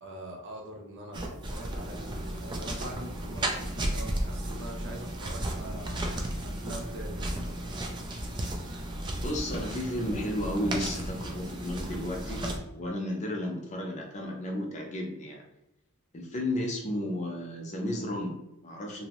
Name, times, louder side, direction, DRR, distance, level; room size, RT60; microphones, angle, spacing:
voice 1, 0.0-6.0 6.4-7.8, right 1 dB, 55° right, 0 dB, 0.6 m, -43 dB
sound 1, 1.1-12.6, right 1 dB, 20° right, 0.3 m, -34 dB
voice 2, 9.2-12.4 12.7-15.4 16.1-19.1, left 1 dB, 35° left, 0 dB, 0.5 m, -33 dB
2.6 x 2.0 x 2.9 m, 0.89 s
head